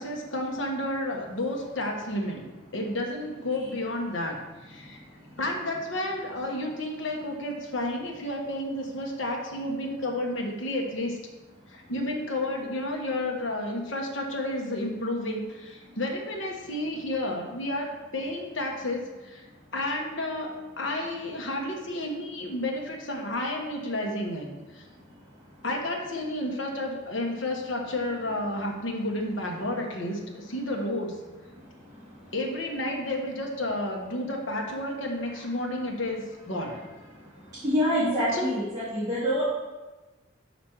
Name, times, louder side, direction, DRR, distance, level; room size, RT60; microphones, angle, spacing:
voice 1, 0.0-2.4 2.7-5.0 5.4-11.2 11.7-19.4 19.7-24.8 25.6-31.2 32.3-36.8 38.3-38.5, left 1 dB, 75° left, 1 dB, 1.2 m, -31 dB
voice 2, 37.6-39.4, equal, 20° right, -13 dB, 2.4 m, -25 dB
5.1 x 5.1 x 6.1 m, 1.2 s
head